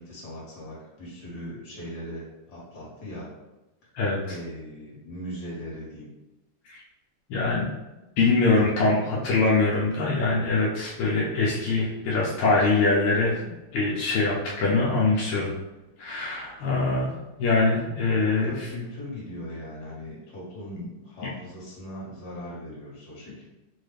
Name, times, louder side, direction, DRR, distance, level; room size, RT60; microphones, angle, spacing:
voice 1, 0.0-3.3 4.2-6.1 16.7-17.0 18.2-23.5, equal, 50° left, -7 dB, 2.0 m, -39 dB
voice 2, 7.3-7.7 8.2-13.4 13.7-15.5 16.0-17.1 17.4-18.5, left 3 dB, 85° left, -4 dB, 1.6 m, -23 dB
4.5 x 2.3 x 3.2 m, 1.0 s
omnidirectional pair, 2.4 m